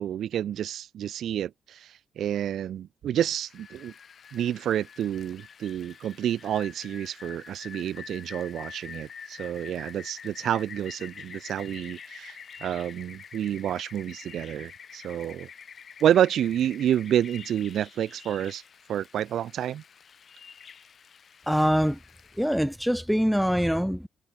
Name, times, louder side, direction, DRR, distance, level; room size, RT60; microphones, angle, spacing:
voice 1, 0.0-3.9 4.3-15.5 16.0-18.6 18.9-19.8, right 10 dB, 75° right, 1.0 m, -29 dB
Rain, 3.3-22.7, left 7 dB, 50° left, 2.8 m, -47 dB
voice 2, 21.5-22.0 22.4-24.1, equal, ahead, 0.3 m, -24 dB
cardioid pair, 110°, 0 cm